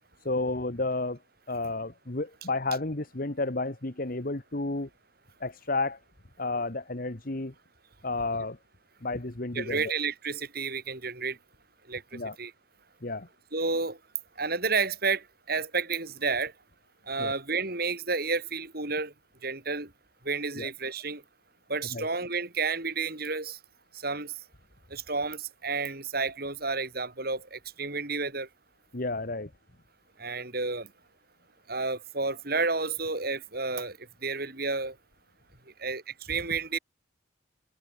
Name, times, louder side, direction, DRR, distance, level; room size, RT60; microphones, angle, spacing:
voice 1, 0.2-1.2 1.5-4.9 5.4-6.0 6.4-7.5 8.0-8.6 9.0-9.8 12.1-12.4 13.0-13.3 17.2-17.3 20.6-20.7 21.9-22.1 28.9-29.5, left 2 dB, 50° left, 1.5 m, -31 dB
voice 2, 9.5-11.4 11.9-12.0 12.4-12.5 13.5-14.0 14.4-16.5 17.1-19.1 19.4-19.9 20.2-21.2 21.7-23.6 23.9-24.3 24.9-28.5 30.2-30.9 31.7-34.0 34.2-34.9 35.8-36.8, right 4 dB, 55° right, 6.3 m, -31 dB
head